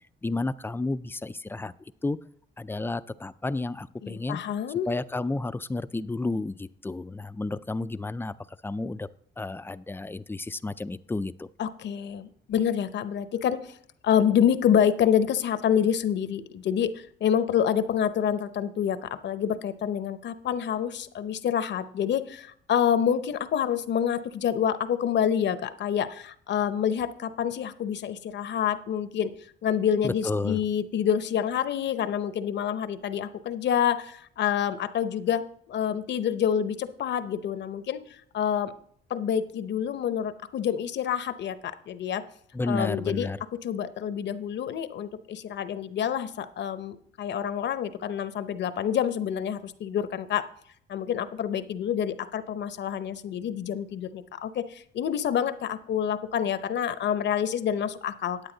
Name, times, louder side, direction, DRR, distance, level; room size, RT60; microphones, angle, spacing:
voice 1, 0.2-1.7 2.0-2.2 2.6-4.4 4.9-8.3 8.6-9.1 9.4-11.5 30.0-30.6 42.5-43.4, left 2 dB, 10° left, 15 dB, 0.3 m, -31 dB
voice 2, 4.0-4.9 11.6-13.8 14.0-29.3 29.6-38.7 39.1-42.2 42.6-43.3 43.6-50.5 50.9-58.4, left 9 dB, 65° left, 13 dB, 0.7 m, -27 dB
9.9 x 8.7 x 3.9 m, 0.63 s
cardioid pair, 90°, 20 cm